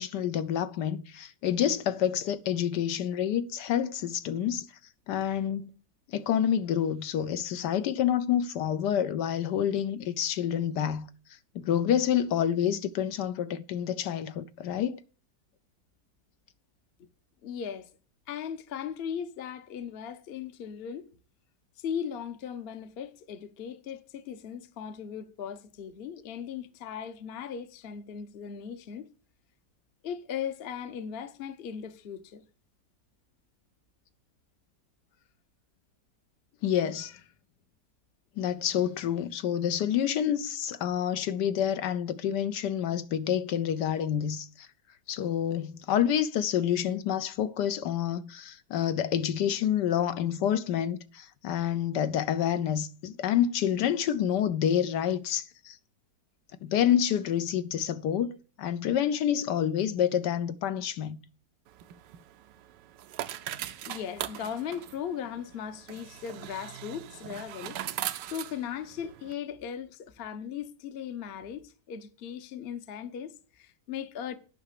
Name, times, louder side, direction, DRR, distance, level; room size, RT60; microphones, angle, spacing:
voice 1, 0.0-4.7 5.1-5.7 6.1-11.1 11.5-15.0 36.6-37.1 38.4-44.7 45.1-55.8 56.6-61.2, left 9 dB, 75° left, 1.2 m, -28 dB
voice 2, 17.4-17.9 18.3-21.1 21.8-29.1 30.0-32.4 37.0-37.2 63.9-74.3, left 8 dB, 45° left, 0.9 m, -38 dB
sound 1, 61.7-69.3, right 12 dB, 80° right, 1.3 m, -40 dB
9.8 x 5.8 x 6.6 m
omnidirectional pair, 1.9 m